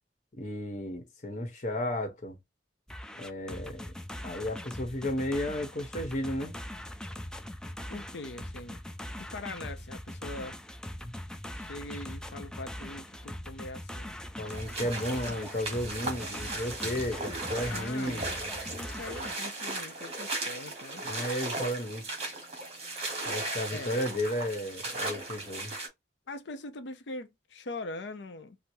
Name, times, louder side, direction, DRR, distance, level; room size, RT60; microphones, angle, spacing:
voice 1, 0.3-2.4 3.2-3.9 4.2-6.5 11.0-11.1 14.4-18.3 21.0-22.1 23.2-25.7, left 1 dB, 45° left, 0.9 m, -33 dB
sound 1, 2.9-19.3, left 1 dB, 5° left, 0.3 m, -41 dB
voice 2, 7.9-8.8 9.2-10.6 11.5-14.1 17.6-21.0 23.7-24.0 26.3-28.6, left 2 dB, 75° left, 0.5 m, -42 dB
sound 2, 14.5-25.9, right 2 dB, 35° right, 1.4 m, -37 dB
4.6 x 2.0 x 2.6 m
head